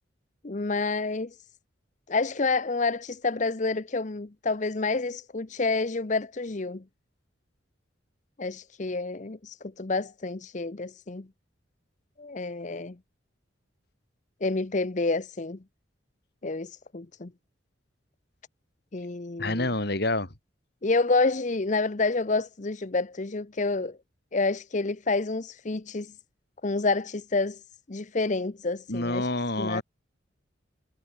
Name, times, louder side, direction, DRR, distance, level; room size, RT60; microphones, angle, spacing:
voice 1, 0.4-1.4 2.1-6.8 8.4-11.3 12.2-13.0 14.4-15.6 16.4-17.3 18.9-19.7 20.8-24.0 24.3-26.1 26.6-27.6 27.9-29.3 29.6-29.8, left 3 dB, 40° left, 0.8 m, -28 dB
voice 2, 19.4-20.3 28.9-29.8, left 2 dB, 55° left, 3.7 m, -28 dB
head